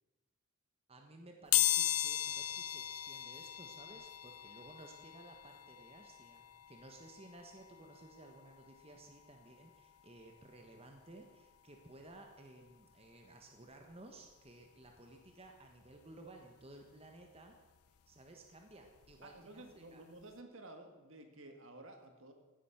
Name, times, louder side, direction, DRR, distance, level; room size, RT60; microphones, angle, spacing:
voice 1, 0.9-17.6 18.1-20.0, right 2 dB, 25° right, 3 dB, 1.3 m, -56 dB
sound 1, 1.5-12.2 12.7-12.8 13.9-14.0 14.3-16.4 16.7-19.4 19.7-19.9 20.2-20.3, left 13 dB, 90° left, 0.7 m, -39 dB
voice 2, 19.2-22.3, right 2 dB, 60° right, 5 dB, 1.9 m, -53 dB
15.5 x 10.5 x 5.9 m, 1.2 s
head